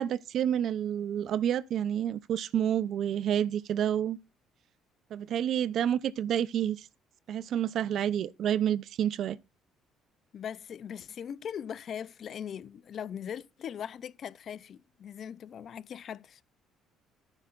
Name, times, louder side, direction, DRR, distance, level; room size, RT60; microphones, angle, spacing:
voice 1, 0.0-4.2 5.1-6.9 7.3-9.4, right 10 dB, 60° right, 0.6 m, -29 dB
voice 2, 10.3-16.4, left 8 dB, 50° left, 0.6 m, -40 dB
14.0 x 9.9 x 2.5 m
cardioid pair, 105°, 0 cm